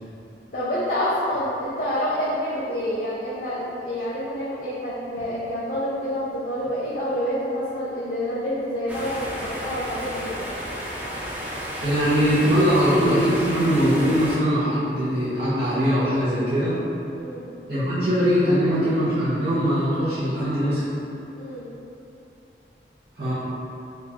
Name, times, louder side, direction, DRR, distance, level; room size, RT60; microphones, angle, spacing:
voice 1, 0.5-10.4 17.2-17.5 21.3-21.7, equal, 50° left, -10 dB, 0.5 m, -28 dB
sound 1, 8.9-14.4, equal, 10° right, 0.4 m, -32 dB
voice 2, 11.8-16.8 17.7-20.8 23.2-23.3, equal, 60° right, -15 dB, 0.9 m, -21 dB
3.7 x 2.4 x 2.8 m, 2.8 s
head